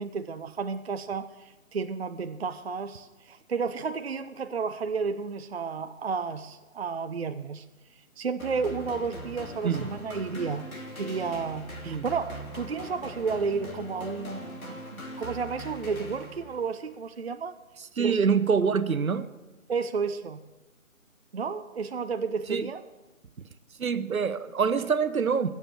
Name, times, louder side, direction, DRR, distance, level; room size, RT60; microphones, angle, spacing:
voice 1, 0.0-7.6 8.2-10.7 11.0-17.5 18.0-18.2 19.7-20.4 21.3-22.8, right 5 dB, 50° right, 0.5 m, -32 dB
sound 1, 8.4-16.7, equal, 80° left, 2.9 m, -41 dB
voice 2, 18.0-19.3 22.5-22.7 23.8-25.5, right 6 dB, 80° right, 0.9 m, -25 dB
16.0 x 7.2 x 6.2 m
figure-of-eight pair, 160°, 42 cm